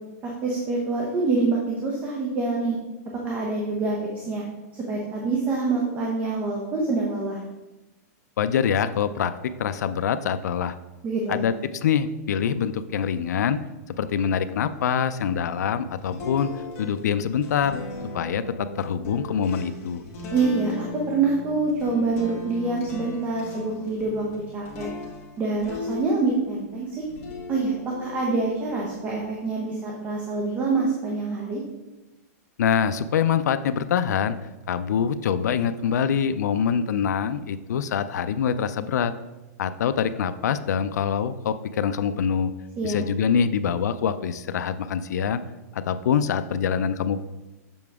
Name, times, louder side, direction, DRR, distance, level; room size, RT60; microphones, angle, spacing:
voice 1, 0.2-2.8 3.2-4.4 4.9-7.4 11.0-11.5 20.3-20.7 21.1-24.2 24.5-24.9 25.4-26.9 27.5-27.7 28.0-31.6 42.8-43.0, right 3 dB, 15° right, -2 dB, 0.9 m, -26 dB
voice 2, 8.4-9.3 9.6-10.7 11.3-13.6 14.0-16.5 16.8-17.8 18.1-20.0 32.6-34.4 34.7-39.1 39.6-42.5 42.8-45.4 45.7-47.2, left 7 dB, 80° left, 11 dB, 0.4 m, -24 dB
sound 1, 16.0-26.6 27.0-29.4, left 4 dB, 30° left, 1.6 m, -38 dB
7.1 x 5.8 x 3.5 m, 1.1 s
supercardioid pair, 165°, 9 cm